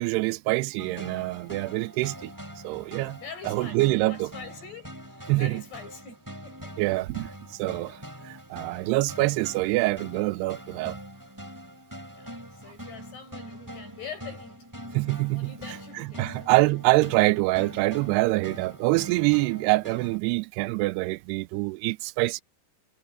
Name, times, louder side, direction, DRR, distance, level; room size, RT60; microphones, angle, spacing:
voice 1, 0.0-2.3 2.6-3.2 3.5-4.3 5.3-5.6 6.8-8.0 8.2-11.0 15.0-15.5 16.0-22.4, right 22 dB, 85° right, 2.6 m, -25 dB
sound 1, 0.8-20.2, equal, 5° right, 6.8 m, -43 dB
voice 2, 3.1-6.8 12.1-14.7 15.2-16.5, left 6 dB, 85° left, 9.6 m, -44 dB
omnidirectional pair, 4.6 m